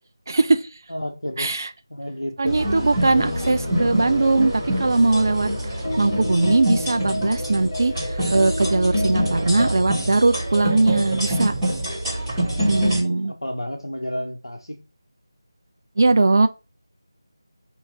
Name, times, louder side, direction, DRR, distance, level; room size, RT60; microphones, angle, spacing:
voice 1, 0.3-0.7 1.4-1.7 2.4-5.5 6.0-11.5 12.7-13.3 16.0-16.5, right 3 dB, 50° right, 0.5 m, -20 dB
voice 2, 0.9-1.5 1.9-2.6 12.5-14.8, equal, 85° left, 0.9 m, -31 dB
sound 1, 2.5-13.0, equal, 5° right, 2.2 m, -26 dB
sound 2, 3.1-9.7, left 2 dB, 50° left, 1.4 m, -32 dB
4.4 x 3.1 x 3.8 m
figure-of-eight pair, 165°, 2 cm